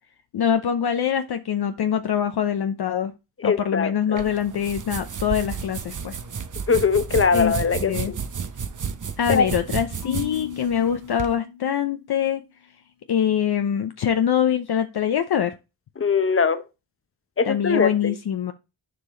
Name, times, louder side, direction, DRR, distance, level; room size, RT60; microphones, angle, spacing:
voice 1, 0.3-3.1 3.4-6.2 7.3-7.5 7.8-8.1 9.2-12.4 13.1-15.5 17.5-18.5, left 9 dB, 50° left, 0.7 m, -24 dB
voice 2, 3.4-4.2 6.7-8.1 9.3-9.4 16.0-16.6 17.4-18.1, left 5 dB, 25° left, 1.0 m, -21 dB
sound 1, 4.2-11.3, right 6 dB, 40° right, 0.9 m, -32 dB
Marimba xylophone / Wood, 10.0-12.2, left 9 dB, 85° left, 1.8 m, -37 dB
6.9 x 4.6 x 3.9 m
supercardioid pair, 50°, 49 cm